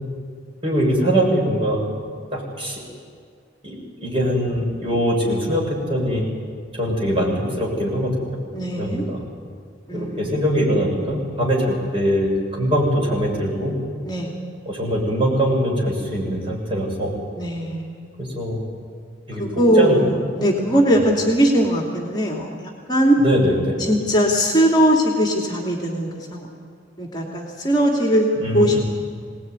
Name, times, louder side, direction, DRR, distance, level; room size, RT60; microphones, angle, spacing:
voice 1, 0.6-1.8 2.3-2.8 3.6-6.2 6.7-8.4 8.8-9.2 9.9-13.7 14.7-17.1 18.2-18.6 19.3-19.4 19.7-20.1 20.9-21.0 23.2-23.9 28.4-28.8, equal, 30° right, -3 dB, 7.0 m, -22 dB
voice 2, 8.5-9.0 9.9-10.4 14.0-14.3 17.4-18.2 19.4-23.2 23.8-26.5 27.0-28.3 28.5-28.8, equal, 25° left, 0 dB, 2.6 m, -20 dB
24.0 x 19.0 x 9.5 m, 2.2 s
head